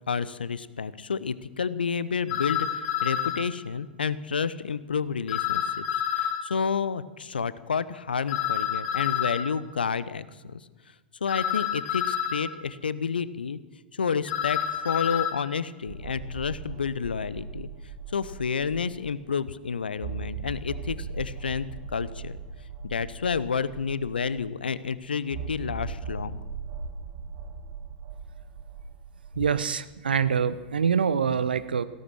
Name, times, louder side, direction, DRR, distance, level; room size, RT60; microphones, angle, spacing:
voice 1, 0.1-5.8 6.1-10.6 11.2-13.6 13.9-17.7 18.1-21.7 21.9-22.4 22.9-26.4, left 6 dB, 75° left, 17 dB, 0.7 m, -30 dB
sound 1, 2.3-3.4 5.3-6.4 8.3-9.4 11.3-12.4 14.3-15.3, left 10 dB, 45° left, 2.4 m, -28 dB
sound 2, 15.9-19.1 19.4-19.5 20.0-24.5 25.3-29.6, right 5 dB, 45° right, 2.0 m, -39 dB
voice 2, 29.4-31.8, right 7 dB, 70° right, 15 dB, 0.8 m, -25 dB
15.5 x 13.5 x 6.1 m, 1.3 s
figure-of-eight pair, 95°, 5 cm